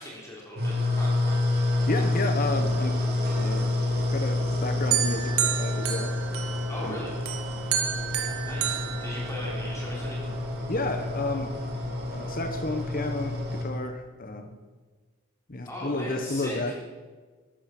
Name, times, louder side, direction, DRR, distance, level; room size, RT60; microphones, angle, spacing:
voice 1, 0.0-1.6 6.7-7.1 8.5-10.3 15.6-16.8, left 1 dB, 15° left, -4 dB, 3.7 m, -39 dB
sound 1, 0.6-13.6, left 2 dB, 45° right, 3.1 m, -28 dB
voice 2, 1.9-3.0 3.3-6.1 6.8-7.0 10.7-11.6 12.1-14.5 15.5-16.7, left 2 dB, 40° left, 7 dB, 1.1 m, -31 dB
sound 2, 4.9-6.8 7.3-9.8, right 10 dB, 70° right, 1.8 m, -30 dB
13.5 x 13.0 x 6.1 m, 1.4 s
head